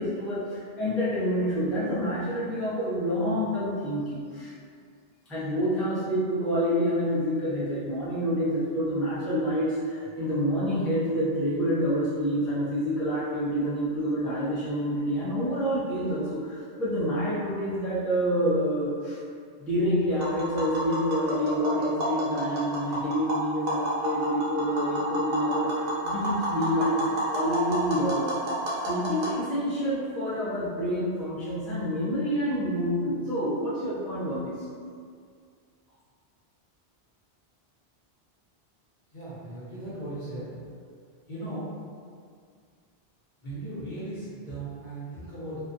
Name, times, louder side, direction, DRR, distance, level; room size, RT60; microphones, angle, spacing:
voice 1, 0.0-4.5 5.3-19.2 19.6-28.3 28.8-34.6, equal, ahead, -12 dB, 0.5 m, -27 dB
Tap, 20.1-29.3, right 1 dB, 50° right, 0.6 m, -30 dB
voice 2, 39.1-40.5 41.3-41.7 43.4-45.6, right 1 dB, 50° left, -11 dB, 0.9 m, -37 dB
2.5 x 2.2 x 2.5 m, 2.1 s
omnidirectional pair, 1.1 m